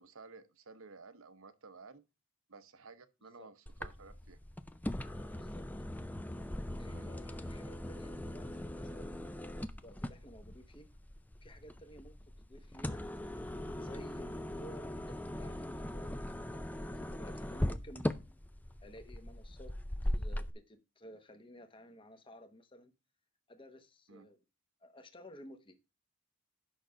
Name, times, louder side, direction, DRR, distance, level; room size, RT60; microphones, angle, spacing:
voice 1, 0.0-2.0 2.5-4.4 6.9-7.2 24.1-24.2, right 4 dB, 65° right, 0.9 m, -54 dB
sound 1, 3.7-20.5, left 1 dB, 5° left, 0.4 m, -40 dB
voice 2, 5.3-5.6 6.7-9.3 9.7-10.9 11.4-12.1 12.5-13.1 13.8-18.2 18.8-19.7 20.1-22.9 23.5-24.4 24.8-25.8, equal, 25° left, 1.0 m, -54 dB
9.1 x 5.9 x 5.0 m
head